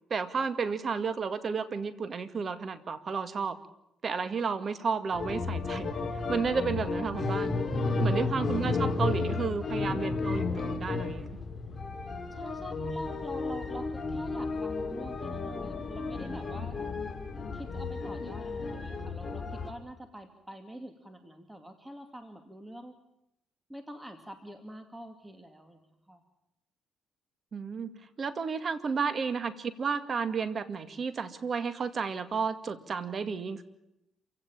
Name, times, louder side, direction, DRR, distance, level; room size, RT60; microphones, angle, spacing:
voice 1, 0.1-3.6 4.0-5.9 6.3-7.5 8.0-11.3 27.5-27.9 28.2-33.6, right 5 dB, 45° right, 11 dB, 2.1 m, -32 dB
sound 1, 5.1-19.7, left 3 dB, 35° left, 3.2 m, -33 dB
voice 2, 8.0-8.4 12.3-16.8 17.5-23.0 23.7-25.8 26.1-26.2, equal, 10° right, 6 dB, 2.4 m, -45 dB
27.5 x 16.5 x 9.0 m, 0.85 s
cardioid pair, 90°, 0 cm